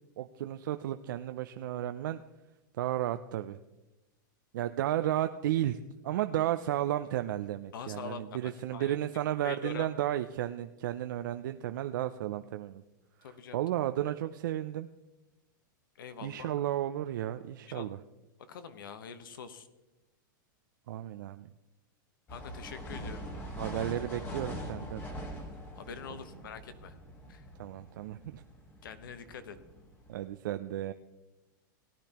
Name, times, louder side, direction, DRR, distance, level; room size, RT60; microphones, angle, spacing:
voice 1, 0.2-2.2 2.8-3.6 4.5-12.8 13.5-14.9 16.2-18.0 20.9-21.5 23.5-25.0 27.6-28.4 30.1-30.9, right 12 dB, 70° right, 9 dB, 0.5 m, -33 dB
voice 2, 7.7-9.0 9.4-9.9 13.2-13.6 15.9-16.5 17.7-17.9 18.4-19.7 22.3-23.2 25.7-26.9 27.3-27.4 28.8-29.6, left 7 dB, 85° left, 11 dB, 1.1 m, -44 dB
sound 1, 22.3-30.3, equal, 20° left, 1.5 m, -43 dB
18.0 x 10.0 x 2.9 m, 1.0 s
supercardioid pair, 150°, 11 cm